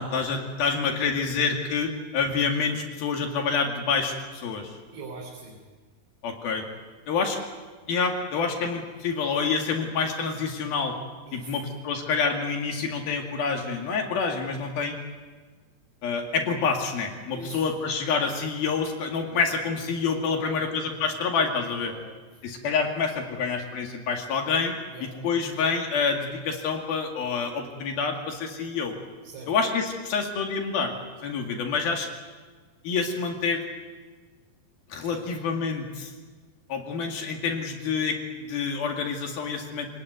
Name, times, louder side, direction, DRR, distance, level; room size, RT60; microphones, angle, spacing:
voice 1, 0.0-4.8 6.2-6.6 7.1-7.4 7.9-11.0 11.3-15.0 16.0-21.9 22.4-24.7 25.0-28.9 29.5-30.9 31.2-32.1 32.8-33.6 34.9-36.1 36.7-40.0, left 5 dB, 65° left, 2 dB, 3.9 m, -27 dB
voice 2, 4.9-5.6 11.3-11.6 17.3-17.6 20.3-21.0 21.8-22.4 24.9-25.2 29.2-29.5 35.0-35.3, right 3 dB, 75° right, -1 dB, 5.5 m, -43 dB
27.0 x 19.5 x 9.5 m, 1.4 s
omnidirectional pair, 4.7 m